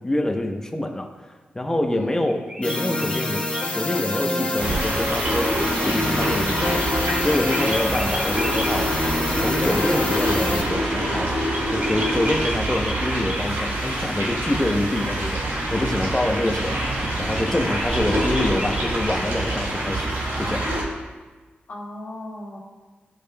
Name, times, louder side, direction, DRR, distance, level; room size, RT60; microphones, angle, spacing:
voice 1, 0.0-6.8 7.2-9.0 9.4-11.4 11.7-15.4 15.7-16.7 17.2-20.7, left 1 dB, 15° left, 4 dB, 0.8 m, -26 dB
voice 2, 1.9-2.3 14.7-14.9 16.3-16.6 21.7-22.6, left 1 dB, 60° left, -3 dB, 1.8 m, -36 dB
sound 1, 2.2-3.7 6.8-8.7 11.5-13.4 17.0-19.2, left 1 dB, 35° right, 2.2 m, -34 dB
sound 2, 2.6-10.6, left 2 dB, 35° left, 1.4 m, -27 dB
sound 3, 4.6-20.8, right 1 dB, 85° right, 1.9 m, -25 dB
14.0 x 5.1 x 2.2 m, 1.3 s
wide cardioid pair, 90°, 4 cm